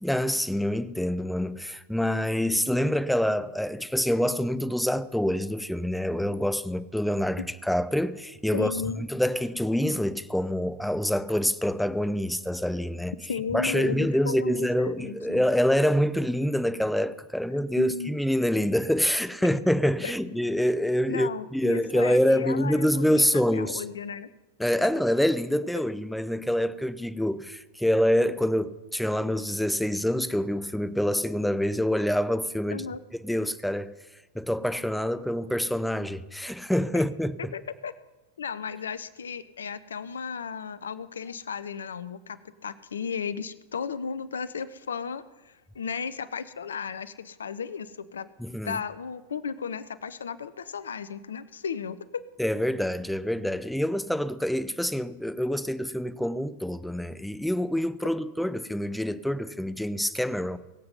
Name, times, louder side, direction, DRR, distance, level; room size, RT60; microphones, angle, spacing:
voice 1, 0.0-8.7 9.0-13.1 13.5-23.8 24.6-32.8 33.2-33.9 34.3-37.5 48.4-48.8 52.4-60.6, equal, ahead, 0.6 m, -26 dB
voice 2, 8.5-9.0 13.3-15.4 17.8-18.1 20.0-20.1 21.1-24.3 32.7-33.0 37.5-37.9 38.4-48.3 48.6-52.2, left 6 dB, 70° left, 0.6 m, -35 dB
22.5 x 7.8 x 5.5 m
figure-of-eight pair, 90°, 0 cm